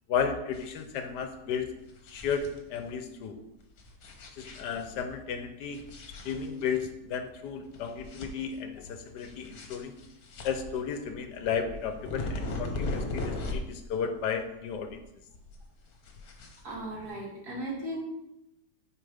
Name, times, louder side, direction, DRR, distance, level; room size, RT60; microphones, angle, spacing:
voice 1, 0.1-1.7 2.1-3.4 4.4-5.8 6.2-9.9 10.4-15.0, left 6 dB, 75° left, 8 dB, 1.3 m, -33 dB
sound 1, 0.5-1.2 1.7-2.9 3.7-5.1 5.7-6.9 7.3-7.4 7.7-8.8 9.1-13.9 14.1-15.1 15.3-17.0, left 2 dB, 60° left, 1.4 m, -38 dB
voice 2, 16.6-18.0, right 1 dB, 60° right, -5 dB, 2.6 m, -36 dB
9.1 x 5.0 x 3.4 m, 0.89 s
omnidirectional pair, 1.9 m